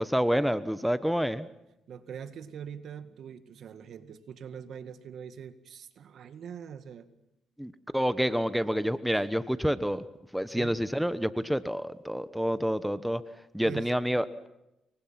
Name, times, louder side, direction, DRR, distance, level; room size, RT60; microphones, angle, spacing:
voice 1, 0.0-1.5 7.6-10.0 10.3-13.2 13.5-14.5, equal, ahead, 13 dB, 1.2 m, -28 dB
voice 2, 1.9-7.1 8.7-9.0 10.5-10.8 13.6-13.9, right 8 dB, 65° right, 11 dB, 2.0 m, -43 dB
29.5 x 23.5 x 5.9 m, 0.91 s
cardioid pair, 90°, 0 cm